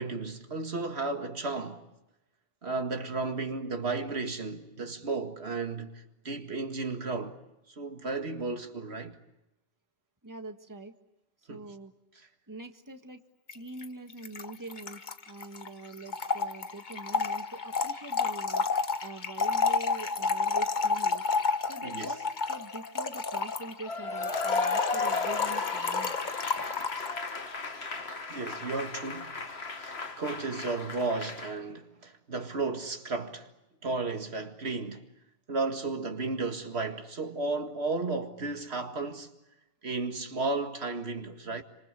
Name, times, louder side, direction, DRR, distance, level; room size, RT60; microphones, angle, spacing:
voice 1, 0.0-1.9 2.6-7.4 7.8-9.2 11.5-11.6 21.8-22.1 28.3-33.5 33.8-35.1 35.5-39.3 39.8-41.6, right 3 dB, 90° right, 2.2 m, -34 dB
voice 2, 10.2-10.9 11.5-11.9 12.5-13.2 13.5-21.2 21.7-26.2 26.6-26.8, right 2 dB, 20° right, 1.7 m, -44 dB
Trickle dribble / Fill (with liquid), 13.5-13.6 13.8-13.9 14.1-27.2, left 4 dB, 50° left, 1.2 m, -31 dB
Cheering / Applause / Crowd, 23.9-31.5, left 3 dB, 90° left, 2.1 m, -34 dB
28.5 x 26.0 x 7.5 m
omnidirectional pair, 1.1 m